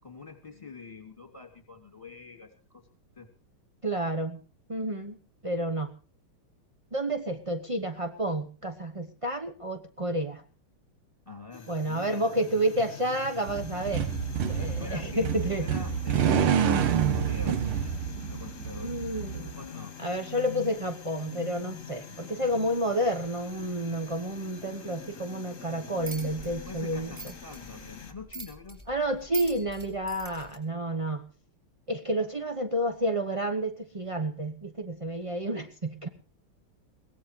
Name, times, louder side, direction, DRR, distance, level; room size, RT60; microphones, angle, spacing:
voice 1, 0.0-2.9 3.2-3.3 11.3-12.4 14.5-17.9 18.3-19.0 19.6-19.9 26.6-28.8, left 4 dB, 15° left, 5 dB, 2.9 m, -45 dB
voice 2, 3.8-4.4 4.7-5.2 5.4-5.9 6.9-10.4 11.7-14.1 14.5-15.7 18.8-19.6 20.0-27.1 28.9-31.3 31.9-36.1, right 1 dB, 50° right, 6 dB, 0.3 m, -30 dB
sound 1, 11.5-28.1, left 7 dB, 40° left, 1.7 m, -44 dB
sound 2, 13.5-19.6, right 8 dB, 90° right, 2.0 m, -28 dB
sound 3, 26.0-30.6, right 3 dB, 10° right, 4.0 m, -43 dB
22.0 x 17.5 x 3.2 m, 0.35 s
omnidirectional pair, 2.4 m